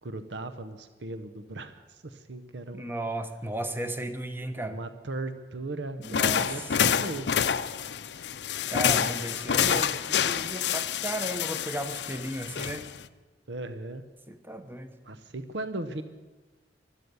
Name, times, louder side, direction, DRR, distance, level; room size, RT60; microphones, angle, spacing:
voice 1, 0.0-2.9 4.6-7.4 13.5-14.0 15.0-16.0, right 2 dB, 80° right, 10 dB, 0.8 m, -37 dB
voice 2, 2.7-4.8 6.0-6.7 8.7-12.9 14.3-14.9, right 1 dB, 10° right, 8 dB, 1.0 m, -35 dB
sound 1, 6.0-13.1, left 8 dB, 75° left, 0.6 m, -28 dB
16.0 x 12.5 x 6.8 m, 1.2 s
head